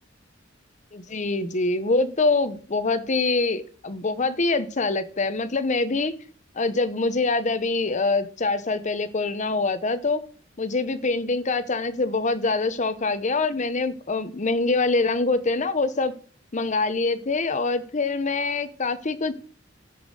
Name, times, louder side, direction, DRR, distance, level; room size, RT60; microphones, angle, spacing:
voice 1, 0.9-6.1 6.6-10.2 10.6-16.1 16.5-19.3, left 3 dB, 40° left, 12 dB, 0.8 m, -24 dB
10.5 x 5.2 x 6.4 m, 0.42 s
head